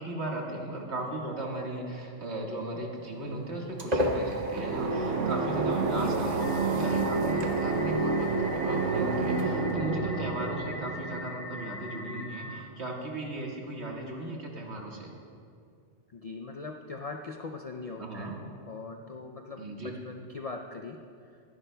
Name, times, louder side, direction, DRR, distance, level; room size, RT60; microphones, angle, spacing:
voice 1, 0.0-15.1 18.0-18.4 19.6-19.9, right 2 dB, 65° right, -1 dB, 1.9 m, -37 dB
sound 1, 3.1-10.5, right 1 dB, 40° right, 0.9 m, -35 dB
sound 2, 4.5-12.2, right 4 dB, 85° right, 1.1 m, -29 dB
sound 3, 6.4-12.6, left 1 dB, 30° left, 1.0 m, -42 dB
voice 2, 16.1-18.3 18.7-21.3, left 3 dB, 50° left, 3 dB, 0.4 m, -41 dB
24.0 x 11.0 x 2.2 m, 2.4 s
omnidirectional pair, 1.2 m